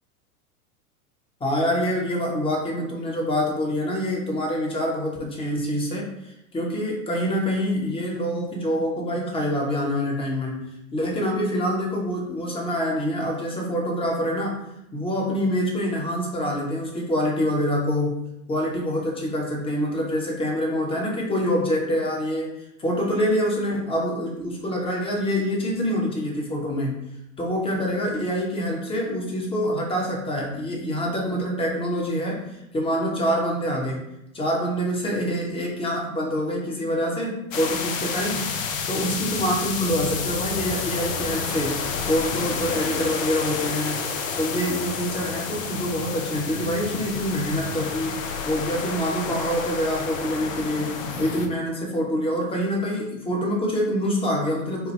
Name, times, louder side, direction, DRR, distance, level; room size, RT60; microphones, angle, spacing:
voice 1, 1.4-14.6 14.9-22.5 22.8-27.0 27.4-34.1 34.3-38.5 38.9-44.1 44.3-54.9, equal, 10° left, -2 dB, 0.9 m, -26 dB
sound 1, 37.5-51.5, left 5 dB, 60° left, 0.7 m, -30 dB
4.7 x 2.2 x 3.1 m, 0.85 s
figure-of-eight pair, 90°, 45 cm